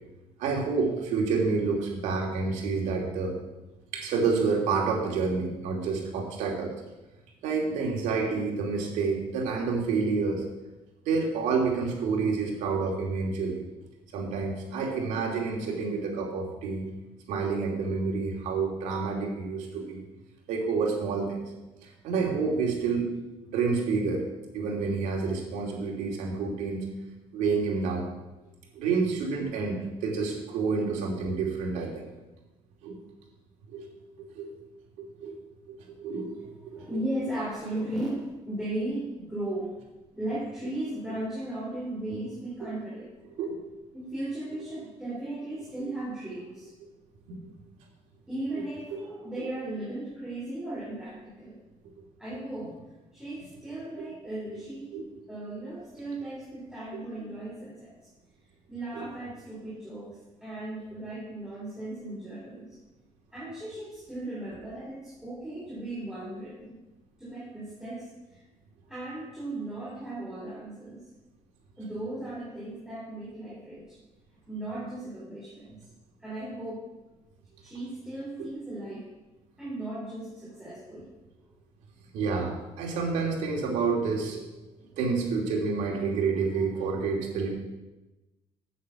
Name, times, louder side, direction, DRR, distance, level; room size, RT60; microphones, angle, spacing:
voice 1, 0.4-3.3 3.9-6.7 7.4-10.4 11.0-13.6 14.1-16.9 17.3-20.0 20.5-21.5 21.8-23.1 23.5-24.2 24.5-26.8 27.3-28.1 28.7-32.1 32.8-33.0 33.7-33.9 34.2-34.6 35.0-35.4 35.7-37.0 42.6-42.7 43.4-43.6 47.3-47.5 54.0-54.1 54.9-55.0 58.9-59.0 82.1-84.4 85.0-87.5, right 4 dB, 85° right, -1 dB, 2.8 m, -29 dB
voice 2, 36.3-39.8 40.1-43.1 43.9-46.7 48.3-51.6 52.2-52.8 53.1-55.0 55.3-58.1 58.7-62.8 63.3-66.7 67.2-68.4 68.9-71.0 71.8-74.0 74.5-75.8 76.2-76.9 77.6-79.1 79.6-81.1 81.4-81.5 84.8-85.0, right 1 dB, 5° right, -7 dB, 3.5 m, -36 dB
8.3 x 7.9 x 7.1 m, 1.1 s
cardioid pair, 135°, 12 cm